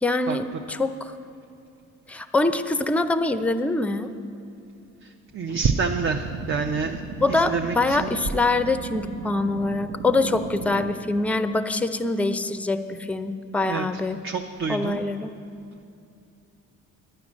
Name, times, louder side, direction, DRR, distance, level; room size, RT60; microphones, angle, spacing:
voice 1, 0.0-1.2 2.1-4.1 7.2-14.2 14.7-15.3, left 2 dB, 5° left, 10 dB, 0.5 m, -24 dB
voice 2, 5.0-7.0 7.3-8.1 13.6-13.9 14.2-15.0, right 5 dB, 45° right, 4 dB, 0.6 m, -27 dB
sound 1, 5.5-10.9, right 5 dB, 80° right, 0.8 m, -36 dB
10.0 x 9.7 x 6.2 m, 2.6 s
cardioid pair, 90°, 30 cm